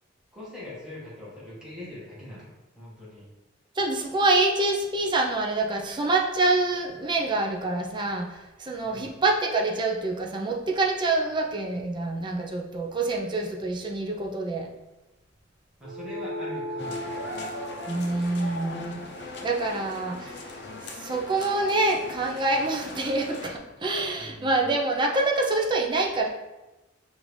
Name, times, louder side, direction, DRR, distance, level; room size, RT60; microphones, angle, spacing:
voice 1, 0.3-3.3 8.8-9.1 15.8-17.3 24.2-24.6, left 1 dB, 5° right, -8 dB, 1.1 m, -42 dB
voice 2, 3.8-14.7 17.9-19.1 19.4-26.3, right 2 dB, 25° right, 0 dB, 0.4 m, -26 dB
sound 1, 15.8-20.6, equal, 85° right, 0.6 m, -39 dB
sound 2, 16.8-23.6, left 2 dB, 60° left, 0.6 m, -39 dB
5.1 x 2.6 x 3.1 m, 1.0 s
head